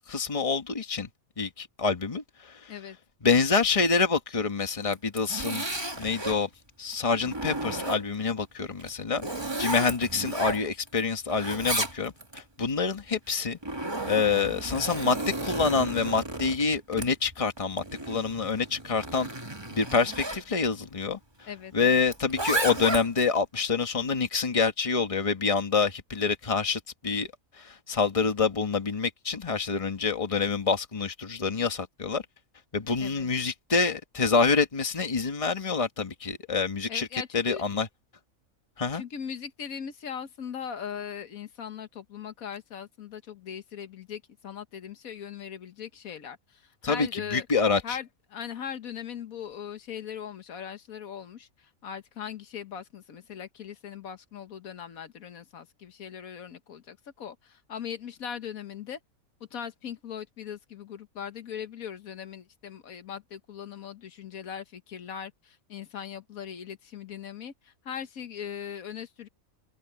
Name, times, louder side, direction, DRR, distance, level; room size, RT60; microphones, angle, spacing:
voice 1, 0.1-1.1 1.4-2.7 3.2-5.7 6.0-6.5 6.8-9.2 9.6-13.6 14.1-19.3 19.7-21.2 21.7-27.3 27.6-32.2 32.7-37.9 38.8-39.0 46.8-48.0, left 5 dB, 25° left, 1.4 m, -27 dB
Zipper (clothing), 4.8-6.4 6.9-8.3 8.8-11.0 11.3-12.4 13.3-20.4 22.1-23.3, right 2 dB, 20° right, 2.2 m, -33 dB
voice 2, 21.5-22.0 33.0-33.3 36.9-37.6 38.9-47.5 47.8-59.0 59.5-69.3, left 8 dB, 80° left, 1.6 m, -39 dB
open air
omnidirectional pair, 1.5 m